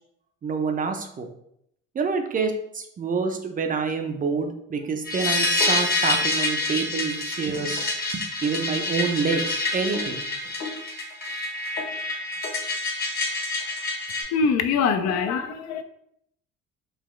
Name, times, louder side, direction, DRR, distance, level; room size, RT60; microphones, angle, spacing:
voice 1, 0.4-1.3 1.9-7.8 8.1-10.2, right 5 dB, 30° right, 5 dB, 0.5 m, -27 dB
sound 1, 5.1-14.2, left 2 dB, 30° left, 0.8 m, -27 dB
voice 2, 14.3-15.8, left 5 dB, 65° left, 8 dB, 0.4 m, -23 dB
4.0 x 2.3 x 3.1 m, 0.74 s
cardioid pair, 100°, 29 cm